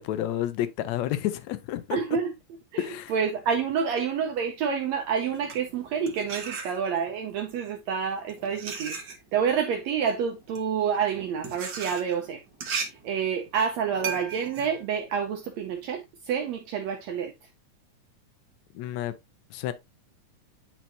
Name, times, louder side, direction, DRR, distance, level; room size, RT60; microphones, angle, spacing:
voice 1, 0.0-2.2 2.8-3.1 18.7-19.1 19.5-19.7, left 12 dB, 80° left, 1.6 m, -30 dB
voice 2, 1.9-2.3 2.7-2.8 3.1-9.0 9.3-12.4 12.7-17.3, right 7 dB, 75° right, 1.6 m, -28 dB
sound 1, 5.2-7.2 8.0-15.9, right 5 dB, 55° right, 1.2 m, -37 dB
10.5 x 4.4 x 2.6 m
omnidirectional pair, 3.9 m